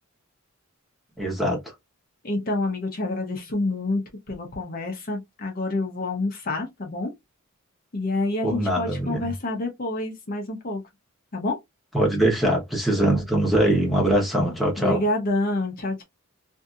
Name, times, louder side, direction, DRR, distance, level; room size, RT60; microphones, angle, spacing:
voice 1, 1.2-1.7 8.4-9.3 11.9-15.0, right 1 dB, ahead, 0.9 m, -22 dB
voice 2, 2.2-7.1 7.9-10.8 11.3-11.6 14.8-16.0, left 2 dB, 40° left, 0.6 m, -28 dB
2.6 x 2.6 x 2.3 m
head